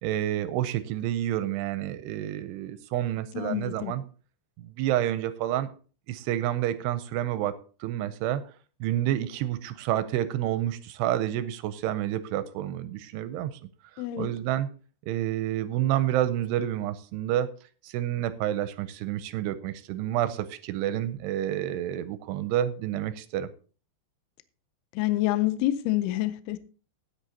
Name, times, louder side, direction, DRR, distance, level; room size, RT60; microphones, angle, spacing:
voice 1, 0.0-4.0 4.6-5.7 6.1-7.5 7.8-8.4 8.8-13.5 14.2-14.7 15.1-17.5 17.8-23.5, right 12 dB, 80° right, 2.6 m, -29 dB
voice 2, 3.3-3.9 14.0-14.3 24.9-26.6, left 15 dB, 80° left, 2.5 m, -27 dB
15.5 x 9.9 x 2.8 m
omnidirectional pair, 5.1 m